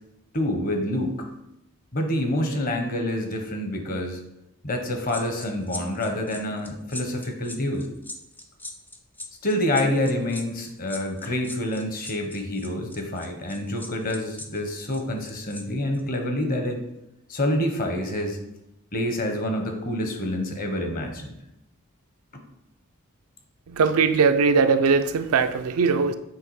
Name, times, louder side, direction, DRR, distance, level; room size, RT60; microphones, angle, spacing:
voice 1, 0.3-1.3 1.9-4.2 4.6-7.9 9.4-16.8 17.3-18.4 18.9-21.4 22.3-22.4, left 1 dB, 40° left, 5 dB, 0.9 m, -27 dB
sound 1, 5.1-15.6 15.9-16.2, left 2 dB, 10° left, 0.4 m, -40 dB
voice 2, 23.7-26.1, right 5 dB, 75° right, 10 dB, 0.4 m, -20 dB
7.7 x 3.5 x 4.7 m, 0.87 s
head